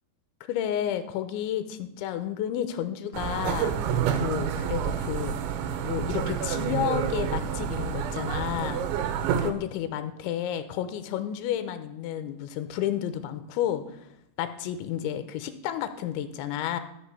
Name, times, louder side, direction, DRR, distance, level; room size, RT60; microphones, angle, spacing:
voice 1, 0.5-3.7 4.1-8.8 9.4-14.0 14.4-16.8, left 10 dB, 90° left, 10 dB, 3.2 m, -31 dB
sound 1, 3.1-9.5, right 8 dB, 85° right, 3.3 m, -28 dB
13.5 x 5.5 x 6.7 m, 0.83 s
omnidirectional pair, 5.2 m